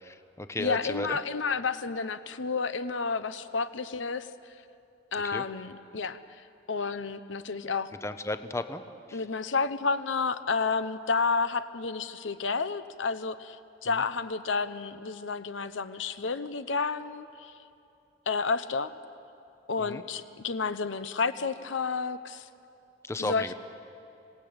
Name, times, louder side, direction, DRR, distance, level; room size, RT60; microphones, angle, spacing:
voice 1, 0.0-1.2 5.2-5.4 8.0-8.8 9.1-9.2 13.9-14.0 19.8-20.0 23.0-23.5, left 2 dB, 15° left, 10 dB, 0.7 m, -34 dB
voice 2, 0.6-4.3 5.1-6.2 6.7-7.9 9.1-13.6 13.8-17.5 18.3-18.9 19.7-22.5 23.2-23.5, left 4 dB, 85° left, 12 dB, 0.9 m, -30 dB
26.5 x 18.0 x 8.8 m, 2.7 s
head